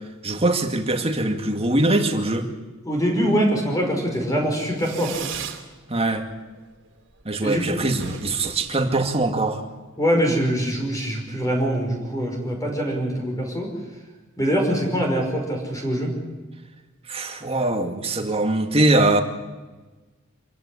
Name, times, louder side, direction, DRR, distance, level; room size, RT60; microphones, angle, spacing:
voice 1, 0.2-2.5 5.9-6.3 7.3-9.6 17.1-19.2, right 2 dB, 30° right, 5 dB, 2.3 m, -22 dB
voice 2, 2.8-5.3 7.4-7.7 10.0-13.7 14.4-16.1, equal, 15° left, 1 dB, 5.3 m, -23 dB
Fireworks, 4.7-5.7 6.0-6.6 6.9-7.0 7.2-7.3 7.6-7.7 7.9-9.5, right 7 dB, 60° right, 2.9 m, -37 dB
26.5 x 16.0 x 9.9 m, 1.2 s
head